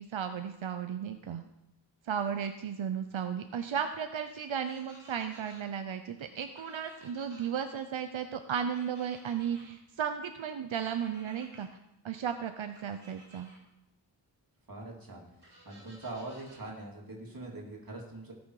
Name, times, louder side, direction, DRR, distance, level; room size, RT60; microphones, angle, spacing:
voice 1, 0.0-1.4 2.0-11.7 12.0-13.5, right 8 dB, 85° right, 8 dB, 0.7 m, -35 dB
sound 1, 4.6-5.6 6.6-7.5 8.7-9.6 10.7-11.7 12.7-13.6 15.4-16.6, right 1 dB, 25° right, 4.7 m, -56 dB
voice 2, 14.7-15.2 15.6-18.3, right 2 dB, 50° right, -1 dB, 2.8 m, -42 dB
17.0 x 6.2 x 4.8 m, 0.89 s
wide cardioid pair, 85°, 46 cm